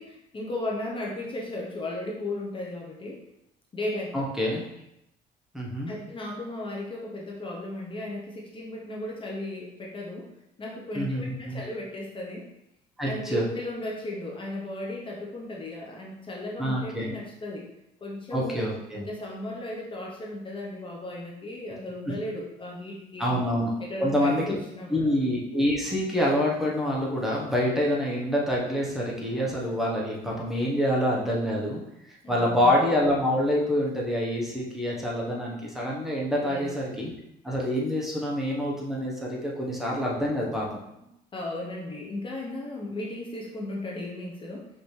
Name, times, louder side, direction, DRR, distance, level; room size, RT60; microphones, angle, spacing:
voice 1, 0.0-3.2 3.7-4.3 5.9-10.3 10.6-12.5 13.0-17.7 18.0-23.4 23.8-25.1 32.2-32.8 36.4-36.7 41.0-44.7, left 1 dB, 30° left, -2 dB, 0.9 m, -35 dB
voice 2, 4.1-4.6 5.5-6.0 10.9-11.6 13.0-13.4 16.6-17.1 18.3-19.0 22.1-22.2 23.2-23.7 24.0-24.5 24.9-31.8 32.1-37.1 37.4-40.7, equal, ahead, -5 dB, 1.0 m, -26 dB
5.3 x 2.9 x 3.3 m, 0.84 s
cardioid pair, 110°, 17 cm